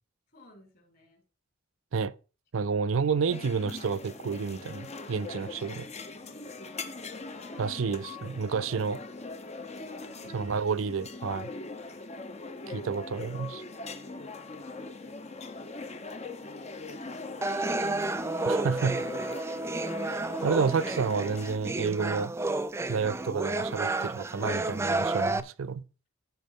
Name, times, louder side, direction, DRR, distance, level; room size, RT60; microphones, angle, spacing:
voice 1, 0.3-1.2 2.6-2.7 6.2-7.8 9.9-10.5 11.5-12.2 12.6-13.0 14.5-15.2 15.5-19.5, equal, 50° left, 4.9 m, -56 dB
voice 2, 2.5-5.9 7.6-9.0 10.3-11.5 12.7-13.6 18.4-19.0 20.4-22.3 22.9-25.8, right 5 dB, 75° right, 0.5 m, -30 dB
sound 1, 3.3-21.6, left 3 dB, 30° left, 0.8 m, -41 dB
sound 2, 17.4-25.4, right 2 dB, 15° right, 0.4 m, -31 dB
14.5 x 4.9 x 3.6 m
head